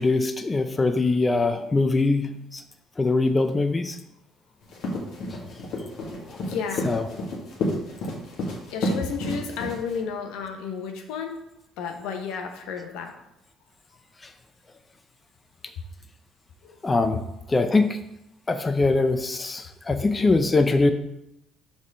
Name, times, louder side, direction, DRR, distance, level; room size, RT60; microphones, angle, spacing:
voice 1, 0.0-2.6 3.0-4.0 6.0-6.1 6.8-7.0 16.8-17.2 17.5-18.0 18.5-20.9, left 3 dB, 25° left, 8 dB, 0.6 m, -22 dB
sound 1, 4.6-10.0, left 1 dB, 65° left, 1.7 m, -30 dB
voice 2, 5.7-6.9 8.7-11.3 11.8-13.1 16.6-16.8, left 6 dB, 80° left, 4 dB, 0.9 m, -33 dB
6.2 x 3.7 x 5.2 m, 0.86 s
supercardioid pair, 70°, 0 cm